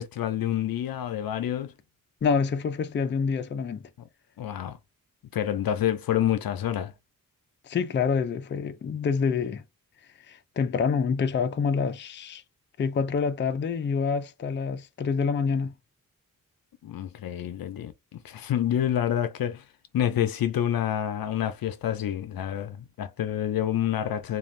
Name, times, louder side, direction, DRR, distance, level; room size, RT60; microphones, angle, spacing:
voice 1, 0.0-1.7 4.4-4.8 5.3-6.9 16.8-19.6 19.9-24.4, left 10 dB, 85° left, 0.6 m, -28 dB
voice 2, 2.2-3.8 7.6-9.6 10.3-12.4 12.8-15.7, left 5 dB, 35° left, 0.4 m, -27 dB
2.5 x 2.3 x 3.1 m
wide cardioid pair, 110°, 35 cm